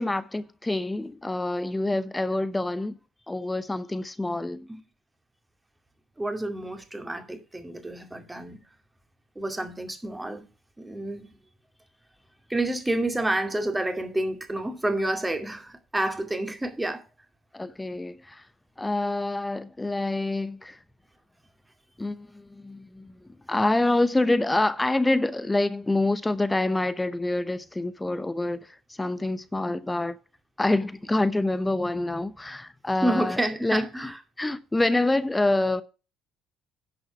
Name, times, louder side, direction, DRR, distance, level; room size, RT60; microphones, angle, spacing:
voice 1, 0.0-3.0 3.3-4.7 17.5-18.5 18.8-20.8 22.0-30.2 30.6-34.1 34.4-35.8, left 2 dB, 15° left, 0.8 m, -26 dB
voice 2, 6.2-8.6 9.4-10.5 10.8-11.3 12.5-17.0 33.0-34.1, right 1 dB, 10° right, 2.3 m, -29 dB
10.5 x 6.3 x 5.8 m
supercardioid pair, 70°, 0 cm